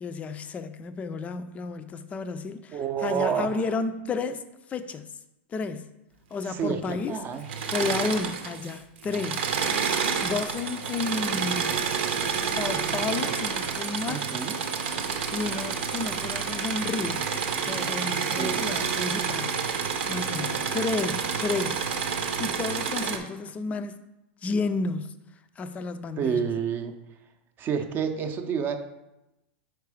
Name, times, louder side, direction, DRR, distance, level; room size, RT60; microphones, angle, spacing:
voice 1, 0.0-4.4 4.7-5.1 5.5-5.9 6.3-7.2 7.7-9.4 10.2-11.9 12.5-14.3 15.3-17.3 17.6-19.7 20.1-21.8 22.4-24.0 24.4-25.1 25.6-26.5, left 4 dB, 20° left, 0.4 m, -32 dB
voice 2, 2.7-3.5 6.5-7.4 14.1-14.5 18.4-18.6 26.2-26.9 27.6-28.8, right 7 dB, 35° right, 0.6 m, -29 dB
Engine / Mechanisms, 7.4-8.7 9.0-23.2, right 6 dB, 75° right, 0.8 m, -29 dB
4.6 x 4.6 x 4.9 m
hypercardioid pair, 125°, 6 cm